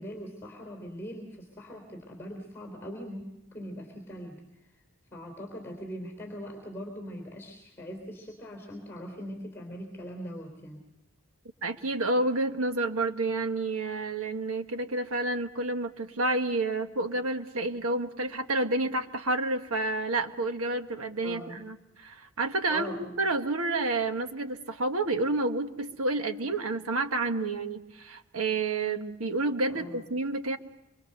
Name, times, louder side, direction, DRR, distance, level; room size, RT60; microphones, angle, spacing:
voice 1, 0.0-4.4 5.1-10.8 21.2-21.6 22.7-23.2 29.7-30.0, equal, 10° left, 2 dB, 3.4 m, -41 dB
voice 2, 11.6-30.6, right 2 dB, 85° right, 7 dB, 1.4 m, -29 dB
25.5 x 23.5 x 6.7 m, 0.93 s
head